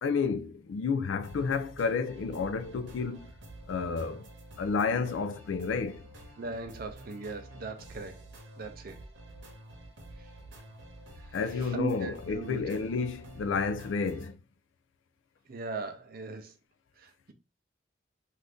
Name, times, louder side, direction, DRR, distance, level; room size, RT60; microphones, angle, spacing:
voice 1, 0.0-3.3 3.7-4.3 4.6-6.0 11.3-14.4, left 5 dB, 85° left, 0.4 m, -31 dB
sound 1, 1.2-14.3, right 1 dB, 85° right, 0.9 m, -49 dB
voice 2, 6.4-8.2 8.6-9.0 11.7-12.6 15.5-16.5 17.0-17.3, right 2 dB, 50° right, 0.5 m, -38 dB
2.6 x 2.4 x 3.3 m
head